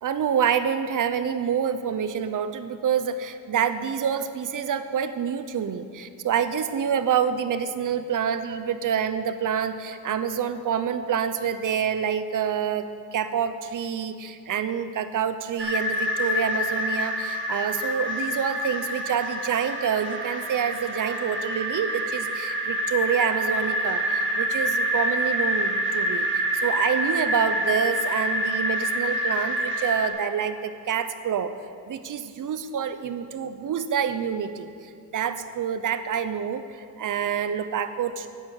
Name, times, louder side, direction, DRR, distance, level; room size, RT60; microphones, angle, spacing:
voice 1, 0.0-31.5 31.9-34.7 35.1-38.3, right 8 dB, 55° right, 11 dB, 0.8 m, -27 dB
sound 1, 15.6-30.1, equal, 30° right, 1.6 m, -27 dB
10.5 x 9.2 x 7.1 m, 2.3 s
wide cardioid pair, 135°, 37 cm